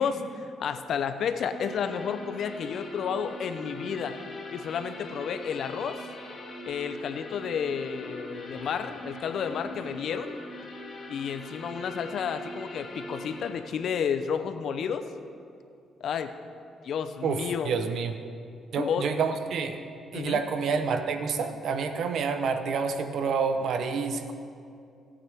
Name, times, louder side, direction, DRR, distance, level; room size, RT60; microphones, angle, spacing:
voice 1, 0.0-4.1 4.5-6.0 6.7-10.3 11.1-15.0 16.0-16.3 16.8-17.8 18.8-19.1 20.1-20.4, left 7 dB, 65° left, 9 dB, 0.7 m, -31 dB
sound 1, 1.5-13.5, left 1 dB, 45° left, 2.0 m, -42 dB
voice 2, 17.6-18.2 18.7-19.8 20.1-24.3, right 5 dB, 70° right, 8 dB, 0.8 m, -28 dB
17.0 x 8.6 x 3.6 m, 2.5 s
cardioid pair, 90°, 0 cm